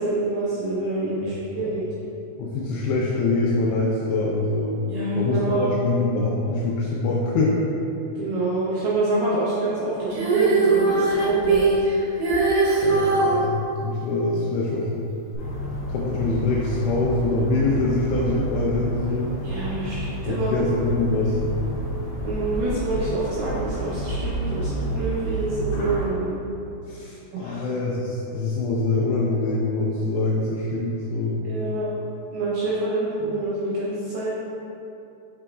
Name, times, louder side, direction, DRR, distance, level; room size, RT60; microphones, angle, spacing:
voice 1, 0.0-1.9 4.9-5.7 8.2-11.9 19.4-20.9 22.2-26.4 27.3-27.6 31.5-31.9 32.3-34.3, right 2 dB, 80° right, -8 dB, 2.3 m, -26 dB
voice 2, 2.4-4.8 5.2-7.5 12.8-14.9 15.9-19.3 20.3-21.4 26.9-31.4, left 3 dB, 85° left, -5 dB, 2.5 m, -24 dB
Female singing, 10.1-13.4 15.3-15.4, right 3 dB, 60° right, 2.3 m, -20 dB
sound 1, 15.4-26.1, right 1 dB, 60° left, 1.9 m, -30 dB
8.6 x 6.0 x 2.3 m, 2.8 s
omnidirectional pair, 5.5 m